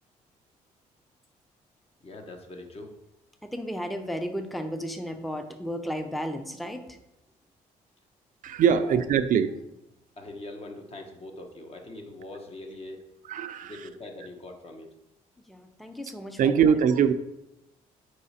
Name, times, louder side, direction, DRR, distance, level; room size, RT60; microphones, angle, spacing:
voice 1, 2.0-2.9 8.7-9.0 10.2-13.0 13.6-14.9, left 2 dB, 40° left, 3 dB, 1.2 m, -42 dB
voice 2, 3.5-6.8 15.5-16.5, equal, ahead, 7 dB, 0.6 m, -34 dB
voice 3, 8.4-9.5 13.3-13.8 16.4-17.1, right 7 dB, 65° right, 10 dB, 0.5 m, -22 dB
4.8 x 4.8 x 4.2 m, 0.90 s
cardioid pair, 75°, 15 cm